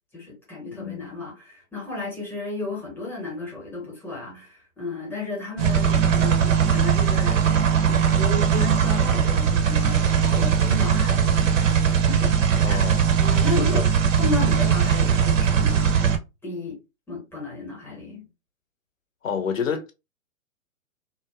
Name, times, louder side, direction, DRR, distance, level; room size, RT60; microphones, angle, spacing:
voice 1, 0.1-12.4 12.6-12.9 13.2-13.9 14.2-15.9 16.4-16.8 17.1-18.3, left 3 dB, 5° left, 0.8 m, -33 dB
voice 2, 0.7-1.2 12.6-13.1 13.6-13.9 19.2-19.9, left 6 dB, 70° left, 0.7 m, -29 dB
sound 1, 5.6-16.2, right 7 dB, 65° right, 0.7 m, -20 dB
2.5 x 2.1 x 2.3 m
figure-of-eight pair, 125°, 41 cm